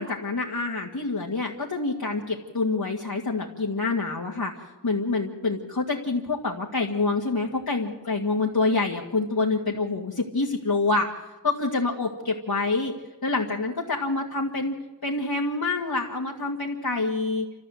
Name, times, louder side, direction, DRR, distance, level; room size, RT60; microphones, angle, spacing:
voice 1, 0.0-4.5 4.8-11.1 11.4-12.9 13.2-14.8 15.0-17.5, left 3 dB, 70° left, -2 dB, 2.0 m, -26 dB
28.0 x 14.0 x 7.9 m, 1.1 s
wide cardioid pair, 45°, 38 cm